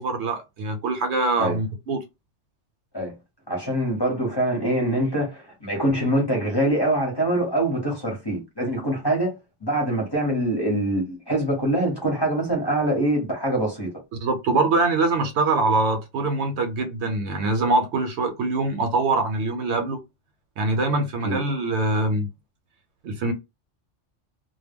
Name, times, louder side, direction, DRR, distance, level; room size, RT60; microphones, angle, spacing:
voice 1, 0.0-2.0 14.2-20.0 20.6-22.3 23.0-23.3, right 3 dB, 70° right, 0.8 m, -23 dB
voice 2, 3.5-9.3 9.6-13.9 21.2-21.4, right 1 dB, 25° left, 0.8 m, -24 dB
2.2 x 2.1 x 3.5 m
omnidirectional pair, 1.3 m